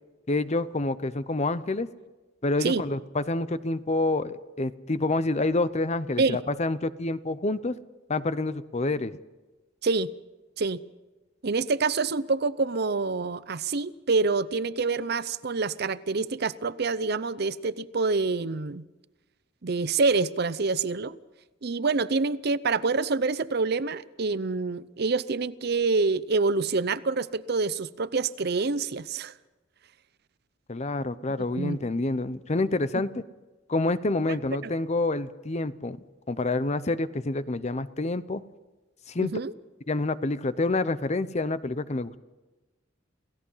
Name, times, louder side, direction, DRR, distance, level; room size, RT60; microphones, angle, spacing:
voice 1, 0.3-1.9 2.4-7.8 8.1-9.2 30.7-33.2 33.7-36.0 36.3-38.4 39.1-39.3 39.9-42.2, left 2 dB, 35° left, 14 dB, 0.7 m, -27 dB
voice 2, 11.4-18.8 19.6-21.2 21.6-29.3 31.6-31.8 34.6-34.7 39.2-39.5, right 4 dB, 55° right, 16 dB, 0.7 m, -26 dB
28.5 x 16.5 x 5.7 m, 1.2 s
head